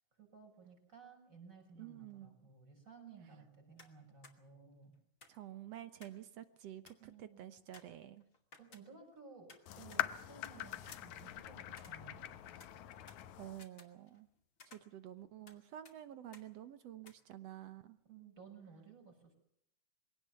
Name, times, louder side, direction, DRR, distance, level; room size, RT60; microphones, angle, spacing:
voice 1, 0.2-5.0 7.0-7.5 8.6-12.4 18.0-19.3, right 5 dB, 20° right, 3 dB, 6.6 m, -57 dB
voice 2, 1.8-2.3 5.3-8.2 13.4-14.3 14.7-18.0, right 12 dB, 65° right, 12 dB, 1.7 m, -50 dB
sound 1, 3.8-4.0 4.2-4.4 5.2-6.3 6.5-6.6 6.9-7.1 7.7-9.2 9.5-10.6 10.9-12.3 12.6-14.3 14.6-15.6 15.8-16.0 16.3-16.5 17.0-17.1, left 3 dB, 25° left, 2.4 m, -60 dB
sound 2, 9.7-13.7, left 13 dB, 70° left, 2.2 m, -43 dB
23.5 x 17.5 x 7.0 m, 0.72 s
omnidirectional pair, 3.8 m